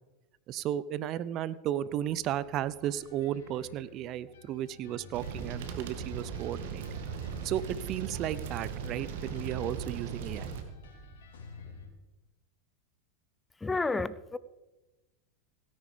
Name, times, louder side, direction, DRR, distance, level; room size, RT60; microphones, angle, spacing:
voice 1, 0.5-6.8 7.4-10.5, right 11 dB, 45° right, 0.6 m, -34 dB
sound 1, 1.9-11.9, left 3 dB, 75° left, 3.5 m, -51 dB
sound 2, 5.1-10.6, right 6 dB, 65° right, 1.9 m, -38 dB
voice 2, 13.6-14.4, left 3 dB, 15° left, 0.7 m, -30 dB
17.0 x 10.0 x 5.1 m
hypercardioid pair, 95°, 0 cm